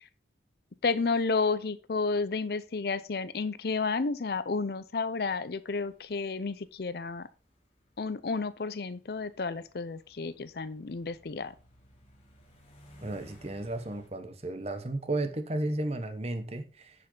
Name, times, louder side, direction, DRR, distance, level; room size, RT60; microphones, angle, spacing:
voice 1, 0.8-7.3 8.0-11.5, left 4 dB, 60° left, 0.6 m, -31 dB
sound 1, 5.6-14.1, equal, 35° left, 2.6 m, -59 dB
voice 2, 13.0-16.9, right 2 dB, 35° right, 1.0 m, -33 dB
10.0 x 5.7 x 3.8 m
head